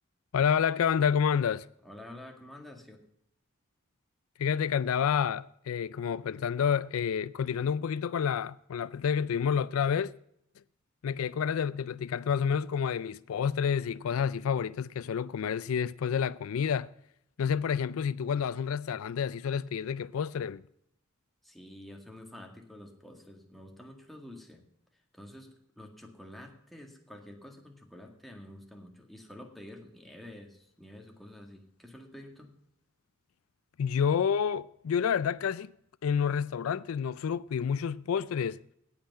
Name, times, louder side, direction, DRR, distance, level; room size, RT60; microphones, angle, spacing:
voice 1, 0.3-1.6 4.4-10.1 11.0-16.9 17.4-20.6 33.8-35.7 36.0-38.6, left 7 dB, 85° left, 0.4 m, -29 dB
voice 2, 1.8-3.0 21.4-24.6 25.1-32.5, left 1 dB, ahead, 1.9 m, -49 dB
17.0 x 5.9 x 5.4 m
head